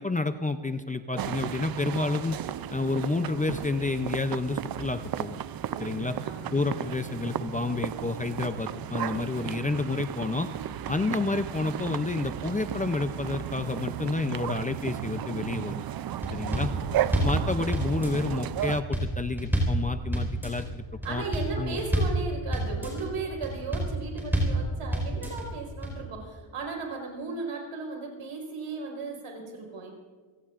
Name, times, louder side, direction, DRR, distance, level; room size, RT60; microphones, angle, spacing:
voice 1, 0.0-2.4 2.7-5.4 5.8-6.2 6.5-10.5 10.9-15.8 16.3-16.7 17.2-21.2 21.6-21.8, left 3 dB, 15° left, 8 dB, 0.4 m, -30 dB
sound 1, 1.2-18.8, right 11 dB, 50° right, 0.4 m, -34 dB
voice 2, 5.7-6.7 16.2-16.9 21.0-29.9, right 3 dB, 90° right, 1 dB, 4.5 m, -36 dB
sound 2, 16.2-16.7 17.0-17.4 17.7-18.3 18.6-19.1 19.4-19.8 20.1-20.7 21.0-21.5 21.8-22.2 22.5-23.1 23.4-23.9 24.2-24.6 24.9-25.5 25.8-25.9, right 1 dB, 5° right, 4.3 m, -27 dB
29.5 x 17.5 x 2.5 m, 1.5 s
wide cardioid pair, 170°, 50 cm